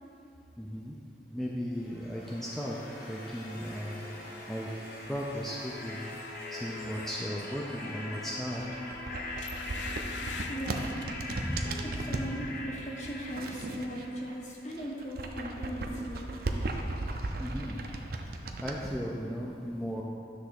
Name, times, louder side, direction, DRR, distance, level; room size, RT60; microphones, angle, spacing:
voice 1, 0.6-1.0 1.3-2.8 3.1-4.1 4.5-4.7 5.1-6.0 6.5-8.6 11.3-11.8 17.4-17.8 18.6-20.0, equal, ahead, -3 dB, 0.4 m, -36 dB
sound 1, 1.7-14.7, left 2 dB, 55° left, 1.3 m, -42 dB
sound 2, 8.5-12.3 13.0-14.3 14.7-18.8, right 2 dB, 55° right, 0.5 m, -36 dB
sound 3, 8.7-8.9 9.4-11.7 12.2-12.4 12.7-13.4 13.7-13.8, left 7 dB, 75° left, 0.4 m, -45 dB
voice 2, 10.5-11.0 11.6-16.3, right 1 dB, 40° left, -3 dB, 1.1 m, -38 dB
9.9 x 3.4 x 6.3 m, 2.7 s
head